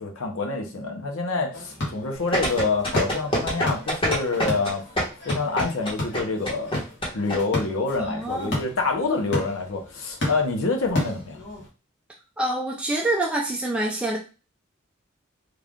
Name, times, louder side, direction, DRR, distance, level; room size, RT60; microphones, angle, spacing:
voice 1, 0.0-4.8 5.2-6.7 7.1-11.4, left 3 dB, 75° left, 3 dB, 0.9 m, -26 dB
sound 1, 1.5-11.7, left 1 dB, 60° left, 1.4 m, -34 dB
sound 2, 2.3-7.4 7.6-7.7, equal, 25° left, 1.2 m, -25 dB
voice 2, 8.0-8.6 12.4-14.2, right 1 dB, 5° right, -3 dB, 0.4 m, -26 dB
3.3 x 2.5 x 3.5 m, 0.34 s
head